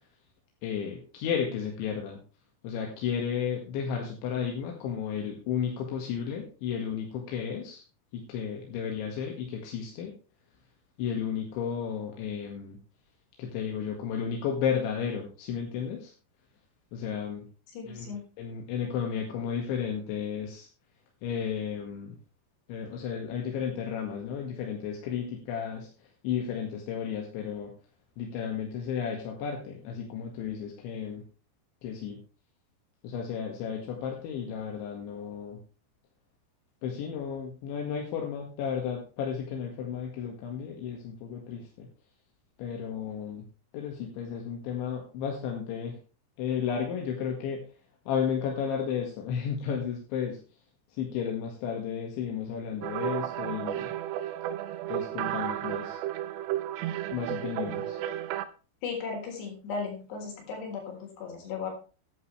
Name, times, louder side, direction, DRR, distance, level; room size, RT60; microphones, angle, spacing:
voice 1, 0.6-2.2 2.6-7.8 8.1-10.1 11.0-12.8 13.4-16.1 16.9-17.4 17.9-20.7 21.2-22.2 22.7-25.9 26.2-27.7 28.2-31.2 31.8-32.2 33.0-35.6 36.8-41.9 42.6-43.4 43.7-46.0 46.4-47.6 48.1-50.4 50.9-53.9 54.9-56.0 57.1-58.0, left 7 dB, 85° left, 1 dB, 4.2 m, -33 dB
voice 2, 17.7-18.2 58.8-61.7, left 5 dB, 70° left, 2 dB, 5.9 m, -36 dB
sound 1, 52.8-58.5, right 12 dB, 85° right, 3.0 m, -33 dB
14.0 x 11.0 x 3.3 m, 0.35 s
omnidirectional pair, 5.1 m